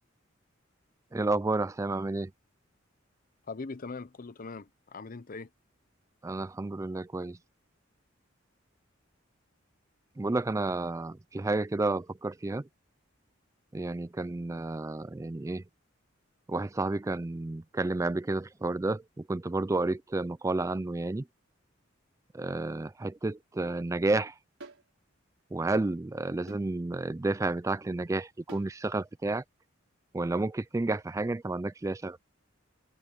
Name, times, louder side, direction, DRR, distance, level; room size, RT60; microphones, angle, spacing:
voice 1, 1.1-2.3 6.2-7.4 10.2-12.6 13.7-15.6 16.5-21.2 22.3-24.3 25.5-29.4 30.1-32.2, right 2 dB, 15° right, 0.4 m, -31 dB
voice 2, 3.5-5.5, left 4 dB, 45° left, 0.7 m, -41 dB
sound 1, 24.6-24.9 26.5-26.7 28.5-28.7, right 2 dB, 75° right, 5.8 m, -48 dB
head